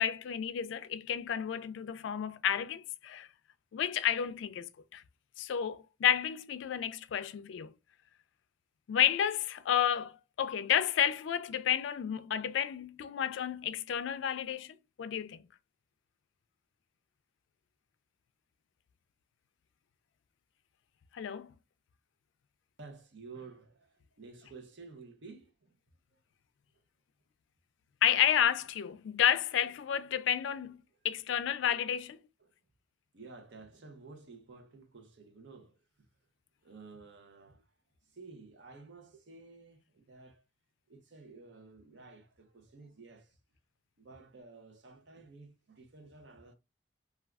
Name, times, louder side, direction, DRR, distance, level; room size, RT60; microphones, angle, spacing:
voice 1, 0.0-3.3 3.7-5.0 5.4-7.7 8.9-10.1 10.4-15.4 21.1-21.5 28.0-30.8 31.0-32.2, left 9 dB, 75° left, 0.3 m, -31 dB
voice 2, 22.8-25.8 26.1-26.2 32.4-32.5 33.1-36.1 36.6-37.7 38.1-40.4 40.9-43.4 44.0-46.5, right 4 dB, 65° right, 0.7 m, -52 dB
3.3 x 2.3 x 2.3 m
head